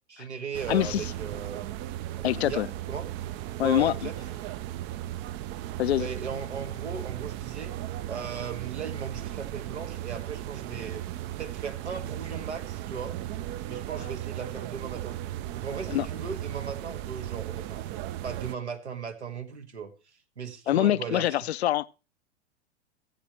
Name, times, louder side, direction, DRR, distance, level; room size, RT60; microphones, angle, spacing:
voice 1, 0.1-1.6 2.2-3.1 3.6-4.2 6.0-7.8 8.1-11.0 11.4-13.1 13.6-15.2 15.6-17.9 18.2-19.9 20.4-21.4, right 6 dB, 80° right, 1.8 m, -37 dB
sound 1, 0.5-18.5, right 13 dB, 35° right, 0.5 m, -36 dB
voice 2, 0.7-1.1 2.2-2.7 3.6-4.1 5.8-6.1 15.9-16.1 20.7-21.9, left 13 dB, 70° left, 0.6 m, -25 dB
15.5 x 8.6 x 3.1 m
figure-of-eight pair, 95°, 33 cm